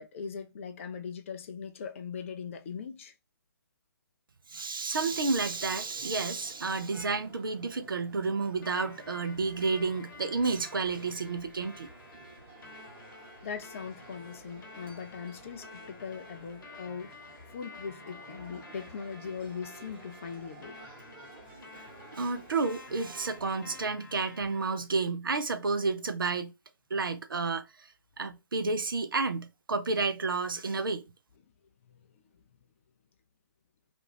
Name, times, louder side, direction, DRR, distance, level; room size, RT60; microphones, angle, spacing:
voice 1, 0.0-3.1 12.6-12.7 13.4-17.1 17.5-20.8 31.9-32.2, left 6 dB, 35° left, 0.4 m, -40 dB
voice 2, 4.5-11.9 21.7-21.8 22.1-26.5 26.9-27.9 28.2-31.0, right 4 dB, 65° right, 0.5 m, -31 dB
sound 1, 5.1-23.8, right 3 dB, 30° right, 1.1 m, -53 dB
sound 2, 8.6-24.6, left 3 dB, 60° left, 1.0 m, -51 dB
2.5 x 2.3 x 3.2 m
figure-of-eight pair, 135°, 12 cm